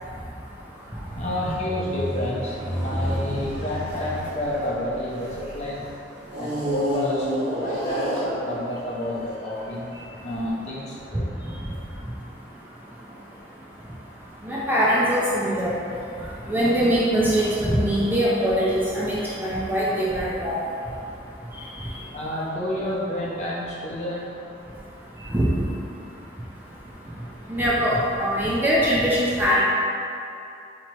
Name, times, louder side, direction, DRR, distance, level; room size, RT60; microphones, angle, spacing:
sound 1, 0.8-5.5 6.3-8.8 9.5-9.6, equal, 75° right, 1.3 m, -29 dB
voice 1, 1.2-5.8 6.4-7.3 7.5-9.9 10.2-11.3 22.1-24.3, left 1 dB, 35° left, -6 dB, 0.7 m, -29 dB
voice 2, 14.4-15.8 16.5-20.6 25.3-25.4 27.5-29.7, equal, 10° right, -7 dB, 0.4 m, -22 dB
3.0 x 2.8 x 4.4 m, 2.7 s
head